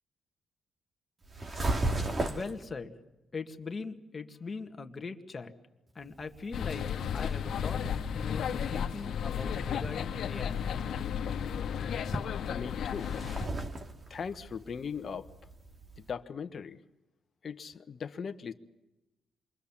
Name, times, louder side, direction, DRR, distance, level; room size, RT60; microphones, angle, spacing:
sound 1, 1.2-2.6 6.0-16.1, right 2 dB, 35° right, 2.5 m, -38 dB
voice 1, 2.2-3.0 3.3-5.5 5.9-6.9 7.1-7.8 8.1-10.6, left 4 dB, 30° left, 6 dB, 2.0 m, -40 dB
sound 2, 6.5-13.5, left 8 dB, 70° left, 1.7 m, -33 dB
sound 3, 7.8-8.8 9.3-9.4 9.6-10.3 10.8-11.0 11.3-11.4 11.9-12.6 13.0-13.1, equal, ahead, 1.4 m, -42 dB
voice 2, 12.5-13.1 14.1-15.3 16.0-16.8 17.4-18.5, left 6 dB, 45° left, 8 dB, 1.3 m, -39 dB
27.5 x 23.0 x 7.3 m, 1.0 s
cardioid pair, 95°, 0 cm